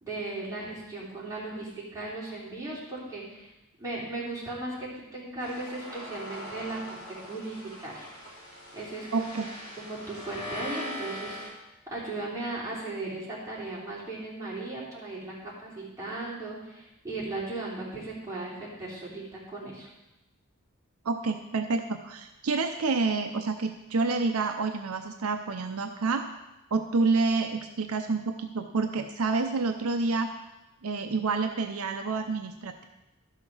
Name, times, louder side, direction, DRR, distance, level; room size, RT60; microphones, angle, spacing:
voice 1, 0.0-3.5 3.8-7.0 7.3-8.1 8.7-9.3 9.8-11.4 11.9-19.9, right 2 dB, 15° right, -7 dB, 3.8 m, -37 dB
sound 1, 5.4-11.5, equal, 20° left, 4.0 m, -41 dB
voice 2, 9.1-9.5 21.0-26.2 26.7-30.3 30.8-32.8, right 4 dB, 70° right, 6 dB, 0.6 m, -28 dB
12.5 x 5.8 x 6.2 m, 0.96 s
head